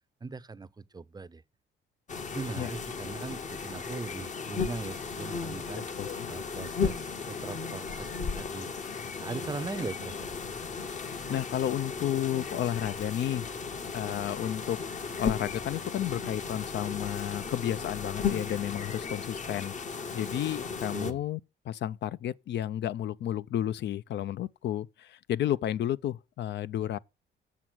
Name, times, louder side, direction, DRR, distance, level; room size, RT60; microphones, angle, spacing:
voice 1, 0.2-1.4 2.1-5.8 6.3-8.7 9.2-10.3 20.9-21.2, right 4 dB, 20° right, 0.5 m, -40 dB
sound 1, 2.1-21.1, left 5 dB, 40° left, 0.9 m, -35 dB
voice 2, 6.0-6.3 11.0-13.5 13.9-19.7 20.1-21.4 21.7-27.0, left 11 dB, 60° left, 0.4 m, -32 dB
7.5 x 7.1 x 6.1 m
cardioid pair, 90°, 20 cm